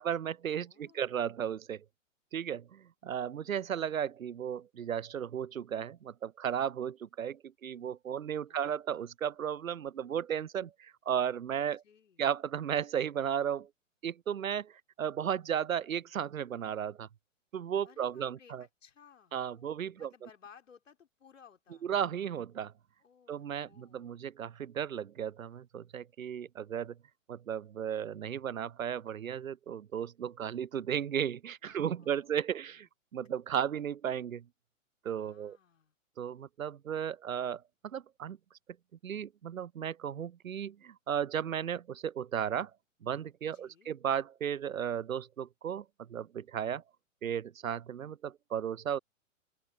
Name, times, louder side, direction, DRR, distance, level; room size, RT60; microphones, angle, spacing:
voice 1, 0.0-1.8 2.3-11.8 12.2-13.7 14.0-17.1 17.5-18.6 19.3-20.1 21.8-22.7 23.3-26.9 27.3-34.4 35.0-35.6 36.2-38.4 39.0-42.7 43.0-46.8 47.2-49.0, right 9 dB, 90° right, 0.5 m, -35 dB
voice 2, 0.6-1.2 8.1-8.8 11.8-12.2 17.8-21.9 23.0-24.3 31.6-32.8 35.1-36.0 43.5-43.9, left 7 dB, 70° left, 4.7 m, -61 dB
open air
figure-of-eight pair, 115°, 40 cm